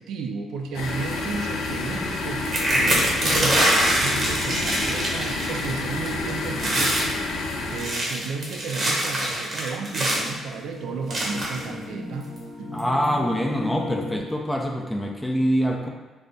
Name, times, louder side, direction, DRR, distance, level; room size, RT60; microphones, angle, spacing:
voice 1, 0.0-7.2 7.7-12.3 12.6-12.7, right 4 dB, 80° right, 3 dB, 0.3 m, -33 dB
sound 1, 0.7-7.9, left 2 dB, 90° left, 0.5 m, -29 dB
sound 2, 2.4-5.8 6.1-6.3 6.6-7.1 7.6-10.3 11.1-11.6 12.4-12.5 12.8-13.0, right 1 dB, 45° right, 0.9 m, -24 dB
sound 3, 9.7-14.2, left 1 dB, 75° left, 0.8 m, -37 dB
voice 2, 12.7-15.9, equal, 10° left, 1 dB, 0.4 m, -24 dB
3.5 x 2.1 x 3.8 m, 1.2 s
cardioid pair, 90°, 0 cm